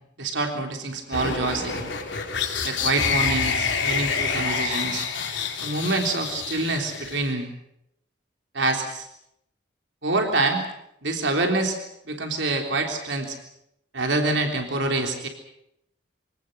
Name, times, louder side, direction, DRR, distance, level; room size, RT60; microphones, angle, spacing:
voice 1, 0.2-1.9 2.6-5.1 5.6-7.5 8.5-9.1 10.0-10.7 11.0-11.8 12.1-13.4 13.9-15.3, right 2 dB, 80° right, 3 dB, 3.6 m, -26 dB
sound 1, 1.1-7.3, left 5 dB, 75° left, 3.5 m, -27 dB
25.0 x 18.5 x 8.0 m, 0.78 s
head